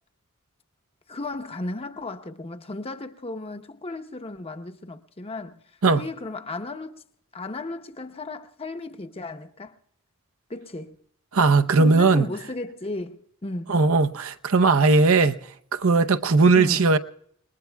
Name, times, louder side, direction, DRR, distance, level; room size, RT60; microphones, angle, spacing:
voice 1, 1.1-5.6 6.0-7.0 7.3-9.8 10.5-11.0 11.8-13.8 16.6-16.9, left 2 dB, 25° left, 0.8 m, -35 dB
voice 2, 11.3-12.3 13.7-15.4 15.7-17.0, right 4 dB, 65° right, 0.7 m, -18 dB
30.0 x 20.0 x 2.3 m
head